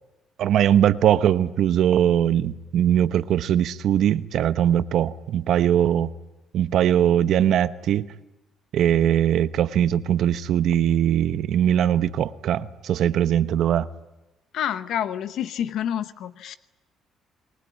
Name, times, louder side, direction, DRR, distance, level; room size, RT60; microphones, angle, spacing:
voice 1, 0.4-6.1 6.5-8.1 8.7-13.9, right 10 dB, 70° right, 0.9 m, -21 dB
voice 2, 14.5-16.6, left 10 dB, 70° left, 0.9 m, -28 dB
28.0 x 20.0 x 9.4 m
cardioid pair, 85°, 0 cm